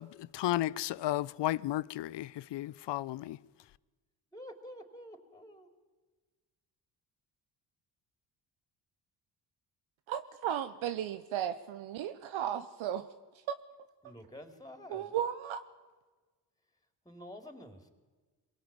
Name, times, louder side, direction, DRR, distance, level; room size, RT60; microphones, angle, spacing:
voice 1, 0.0-3.4, left 14 dB, 60° left, 0.7 m, -33 dB
voice 2, 4.3-5.7 14.0-15.1 17.0-17.9, left 1 dB, 10° left, 4.4 m, -49 dB
voice 3, 10.1-13.1 13.5-13.6 14.9-15.7, right 10 dB, 75° right, 1.0 m, -35 dB
23.5 x 17.5 x 9.0 m
hypercardioid pair, 50°, 48 cm